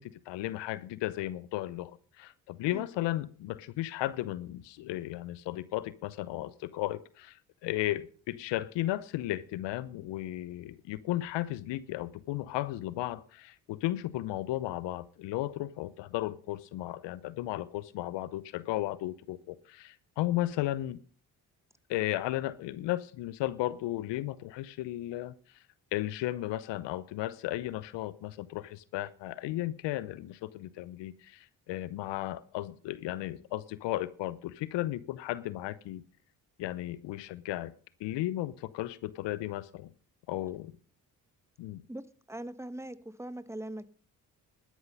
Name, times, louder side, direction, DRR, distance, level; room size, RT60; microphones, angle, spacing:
voice 1, 0.0-21.0 21.9-25.3 25.9-36.0 36.6-37.7 38.0-39.9 40.3-40.7 41.6-41.8, left 15 dB, 75° left, 0.8 m, -35 dB
voice 2, 42.3-43.9, right 1 dB, 5° right, 1.3 m, -41 dB
12.0 x 11.0 x 5.4 m
hypercardioid pair, 50°, 43 cm